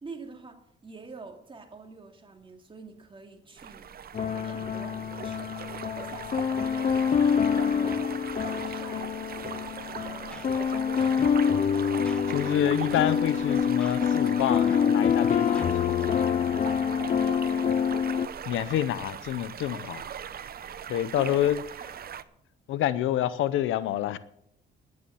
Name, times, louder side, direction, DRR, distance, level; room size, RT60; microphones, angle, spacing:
voice 1, 0.0-3.9 4.2-11.6 17.1-18.0 21.2-21.5 21.8-21.9, right 3 dB, 25° right, 2.6 m, -46 dB
sound 1, 3.6-22.2, right 8 dB, 50° right, 0.8 m, -40 dB
sound 2, 4.1-18.3, left 7 dB, 40° left, 0.6 m, -26 dB
sound 3, 8.6-8.7 9.0-9.1 9.3-16.1, equal, 5° left, 1.7 m, -51 dB
voice 2, 12.3-16.0 18.5-20.0 20.9-21.6 22.7-24.2, left 12 dB, 85° left, 0.8 m, -28 dB
11.5 x 9.7 x 7.0 m
cardioid pair, 90°, 20 cm